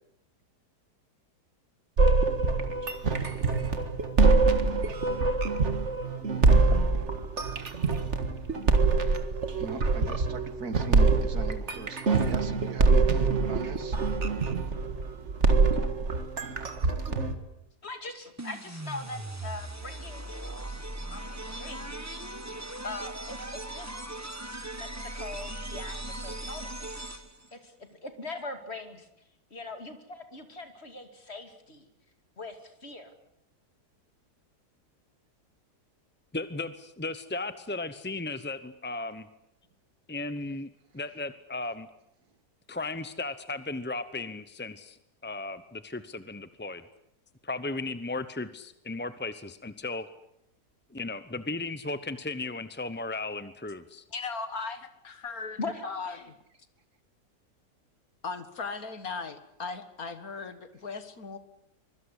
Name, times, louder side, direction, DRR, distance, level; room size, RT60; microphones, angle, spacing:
sound 1, 2.0-17.3, right 3 dB, 45° right, 2.0 m, -24 dB
voice 1, 9.6-14.0, right 4 dB, 65° right, 10 dB, 2.3 m, -39 dB
voice 2, 17.8-22.2 22.8-23.9 24.5-27.1 27.5-29.1 29.5-31.9 32.4-33.1 55.6-56.3, left 3 dB, 40° left, 7 dB, 2.8 m, -41 dB
sound 2, 18.4-27.5, right 1 dB, 10° right, 1.3 m, -39 dB
voice 3, 36.3-39.3 40.1-41.9 42.7-46.8 47.4-50.1 50.9-54.0, left 3 dB, 10° left, 12 dB, 0.5 m, -36 dB
voice 4, 54.1-56.2 58.2-61.4, left 4 dB, 60° left, 10 dB, 2.2 m, -37 dB
24.5 x 23.0 x 8.3 m, 0.80 s
omnidirectional pair, 1.7 m